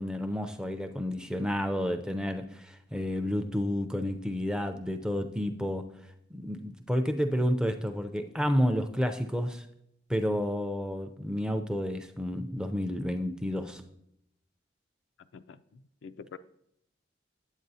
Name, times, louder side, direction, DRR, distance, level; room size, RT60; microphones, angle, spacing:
voice 1, 0.0-9.7 10.1-13.8, equal, 5° right, 0.4 m, -30 dB
voice 2, 15.2-16.4, left 6 dB, 80° left, 0.3 m, -47 dB
8.9 x 8.1 x 2.7 m
head